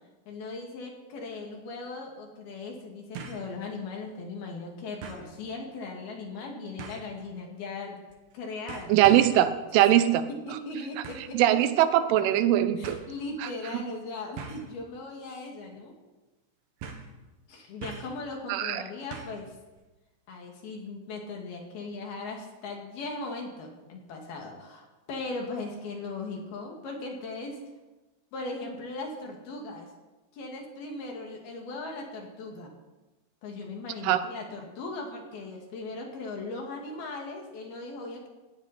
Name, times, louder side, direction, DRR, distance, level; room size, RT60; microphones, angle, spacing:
voice 1, 0.3-8.0 8.3-8.9 10.3-11.4 12.8-15.9 17.5-19.5 20.3-27.6 28.3-29.9 30.3-32.7 33.4-38.3, left 3 dB, 60° left, 1 dB, 3.8 m, -38 dB
sound 1, 1.2-1.3 3.2-3.5 3.9-4.0 5.0-5.3 6.8-7.1 8.1-8.3 8.7-9.4 11.0-11.4 12.3-12.4 12.8-13.1 14.4-14.7 15.2-15.5 15.7-15.8 16.8-17.2 17.8-18.2 19.1-19.5 19.8-19.9, right 5 dB, 60° right, 3.4 m, -42 dB
voice 2, 8.9-10.2 11.3-13.0 18.5-18.8 34.0-34.2, right 12 dB, 85° right, 11 dB, 3.5 m, -21 dB
18.5 x 17.5 x 4.4 m, 1.1 s
omnidirectional pair, 5.5 m